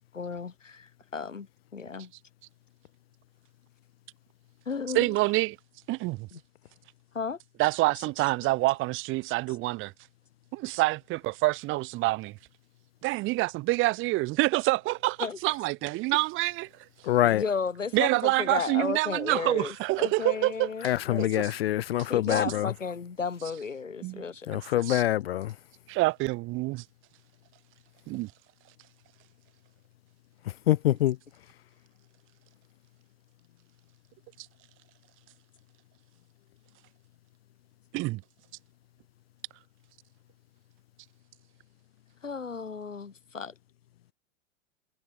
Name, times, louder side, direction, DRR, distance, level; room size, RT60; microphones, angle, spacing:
voice 1, 0.2-1.5 1.7-2.1 4.6-5.1 6.3-6.4 7.1-7.4 15.2-15.4 17.2-21.3 22.1-24.5 42.2-43.5, left 5 dB, 80° left, 1.7 m, -33 dB
voice 2, 4.9-5.6 5.9-6.3 7.6-9.9 10.5-12.4 13.0-16.7 17.9-20.7 21.2-21.5 22.3-22.4 24.0-24.2 24.5-24.6 24.9-25.0 25.9-26.8 28.1-28.3 34.4-34.5 37.9-38.2, right 21 dB, 35° right, 2.5 m, -27 dB
voice 3, 17.0-17.4 20.8-22.7 24.5-25.5 30.7-31.2, left 13 dB, 50° left, 0.8 m, -25 dB
figure-of-eight pair, 100°, 38 cm